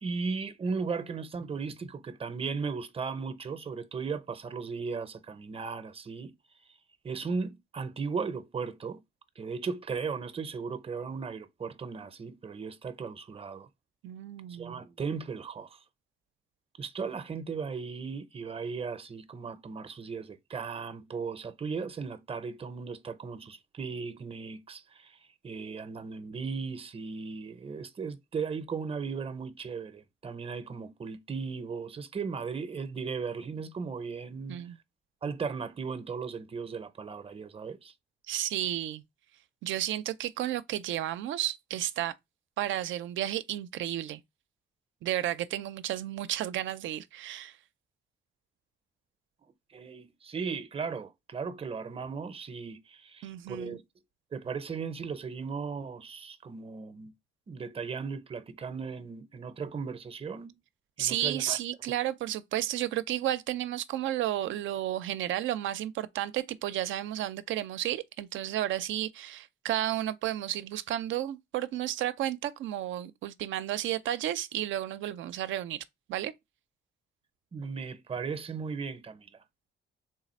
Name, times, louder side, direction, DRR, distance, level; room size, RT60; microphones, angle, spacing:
voice 1, 0.0-6.3 7.0-9.0 9.4-13.7 14.5-15.8 16.8-25.2 25.4-34.6 35.2-37.9 49.7-53.8 54.3-57.1 57.5-60.6 61.0-61.6 77.5-79.3, right 5 dB, 30° right, 0.6 m, -36 dB
voice 2, 14.0-14.8 34.5-34.8 38.3-39.0 39.6-42.1 42.6-44.2 45.0-47.6 53.2-53.8 61.0-76.3, right 13 dB, 75° right, 0.4 m, -32 dB
3.7 x 2.4 x 4.0 m
cardioid pair, 90°, 20 cm